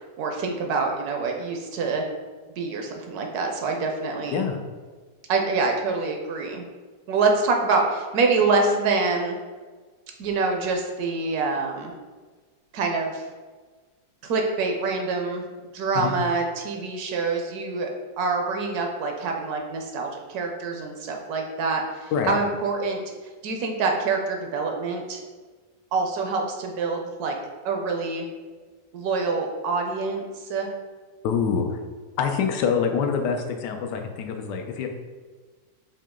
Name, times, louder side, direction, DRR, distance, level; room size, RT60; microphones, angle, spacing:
voice 1, 0.2-2.0 2.6-4.4 5.3-6.7 7.1-9.4 10.2-11.9 12.7-13.2 14.2-15.4 15.7-17.9 18.2-23.0 23.4-25.2 25.9-27.3 27.6-28.3 28.9-30.2 30.5-30.7, right 4 dB, 70° right, 2 dB, 1.1 m, -25 dB
voice 2, 31.2-31.8 32.2-34.9, left 6 dB, 90° left, 4 dB, 1.2 m, -25 dB
5.0 x 2.8 x 3.6 m, 1.4 s
omnidirectional pair, 1.8 m